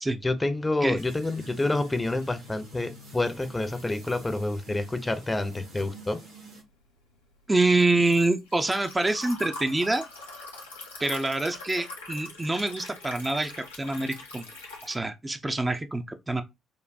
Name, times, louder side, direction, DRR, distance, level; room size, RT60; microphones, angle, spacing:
voice 1, 0.2-6.2, left 2 dB, 20° left, 0.6 m, -28 dB
sound 1, 1.0-6.6, right 1 dB, 80° right, 1.8 m, -48 dB
Liquid, 6.7-15.0, left 3 dB, 90° left, 0.8 m, -43 dB
voice 2, 7.5-10.0 11.0-13.5 13.8-14.5 14.8-16.4, right 2 dB, 20° right, 0.5 m, -26 dB
5.3 x 2.1 x 2.6 m
hypercardioid pair, 50°, 0 cm